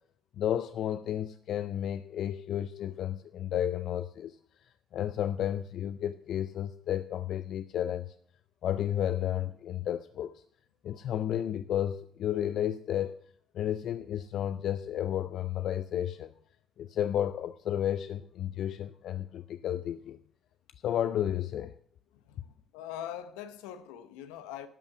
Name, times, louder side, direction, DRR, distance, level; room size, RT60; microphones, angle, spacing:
voice 1, 0.4-4.4 4.6-8.1 8.6-10.4 10.8-13.2 13.5-16.3 16.8-20.2 20.8-21.7, left 10 dB, 65° left, 0.4 m, -32 dB
voice 2, 22.1-24.7, left 10 dB, 90° left, 0.8 m, -42 dB
12.5 x 5.5 x 7.1 m
supercardioid pair, 65°, 0 cm